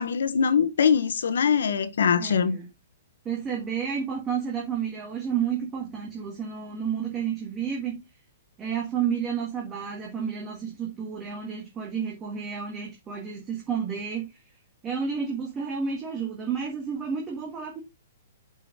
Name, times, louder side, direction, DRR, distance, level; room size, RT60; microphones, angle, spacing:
voice 1, 0.0-2.6, left 7 dB, 80° left, 1.3 m, -22 dB
voice 2, 2.2-2.7 3.2-8.0 8.6-14.3 14.8-17.8, right 7 dB, 10° right, 1.5 m, -31 dB
8.3 x 5.9 x 3.8 m
hypercardioid pair, 180°, 0 cm